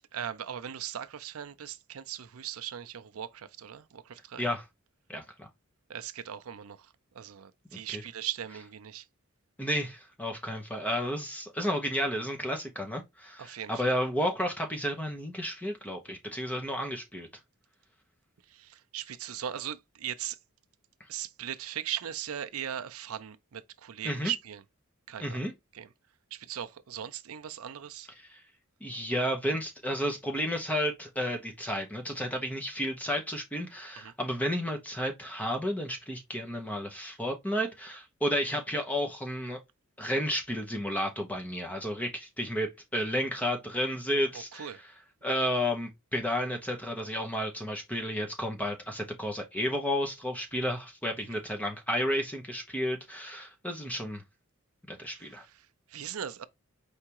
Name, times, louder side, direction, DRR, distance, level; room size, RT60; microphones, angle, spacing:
voice 1, 0.1-4.5 5.9-9.1 13.4-14.0 18.5-20.4 21.1-24.6 25.1-25.4 25.7-25.9 26.3-28.1 34.0-34.1 44.3-44.8 51.3-51.4 55.1-56.4, right 10 dB, 80° right, 0.5 m, -39 dB
voice 2, 5.1-5.5 7.7-8.0 9.6-17.3 24.0-24.3 25.2-25.5 28.3-28.4 28.8-39.6 40.0-44.7 45.2-54.2 54.9-55.4, equal, 5° left, 1.1 m, -32 dB
4.7 x 3.5 x 2.9 m
head